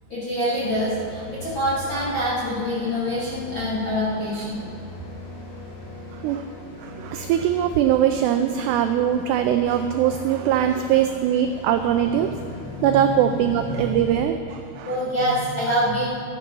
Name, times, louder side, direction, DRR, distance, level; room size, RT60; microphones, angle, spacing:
voice 1, 0.1-4.6 12.5-13.9 14.8-16.1, equal, 45° left, -8 dB, 1.7 m, -26 dB
sound 1, 0.6-14.2, left 1 dB, 70° left, 4.8 m, -40 dB
voice 2, 6.1-6.5 6.8-12.3 12.8-15.0, right 10 dB, 85° right, 7 dB, 2.4 m, -21 dB
14.0 x 9.2 x 6.0 m, 2.6 s
omnidirectional pair, 5.4 m